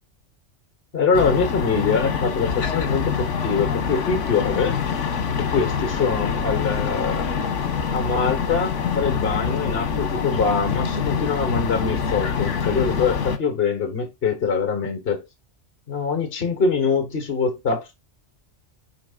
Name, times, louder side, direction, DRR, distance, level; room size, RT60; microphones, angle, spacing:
voice 1, 0.9-4.7 5.4-7.3 7.9-15.2 15.9-17.9, left 5 dB, 55° left, 1.6 m, -24 dB
sound 1, 1.1-13.4, left 6 dB, 85° left, 1.4 m, -25 dB
10.5 x 3.8 x 2.4 m
omnidirectional pair, 1.2 m